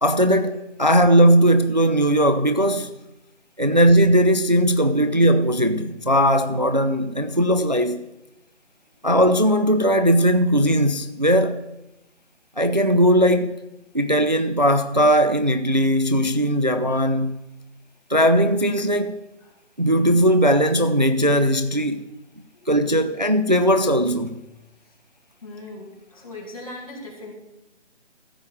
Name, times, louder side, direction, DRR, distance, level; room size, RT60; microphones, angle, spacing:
voice 1, 0.0-2.9 3.6-8.0 9.0-11.6 12.6-13.6 13.9-17.4 18.1-19.2 19.8-22.0 22.7-24.4, equal, 40° right, 0.4 m, -18 dB
voice 2, 25.4-27.3, left 2 dB, 30° left, 2.2 m, -39 dB
14.5 x 5.0 x 7.1 m
figure-of-eight pair, 175°, 36 cm